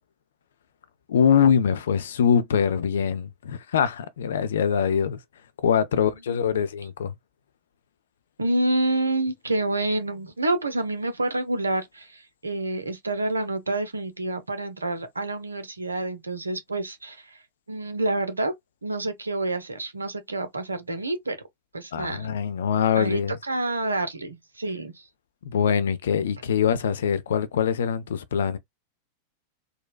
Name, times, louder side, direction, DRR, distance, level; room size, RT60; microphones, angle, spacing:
voice 1, 1.1-5.2 5.6-7.1 21.9-23.4 25.4-28.6, left 7 dB, 65° left, 0.5 m, -23 dB
voice 2, 6.0-6.4 8.4-17.4 17.7-18.5 18.8-21.4 21.7-22.3 22.9-25.0, right 2 dB, 80° right, 0.7 m, -28 dB
3.9 x 2.2 x 2.3 m
figure-of-eight pair, 90°, 0 cm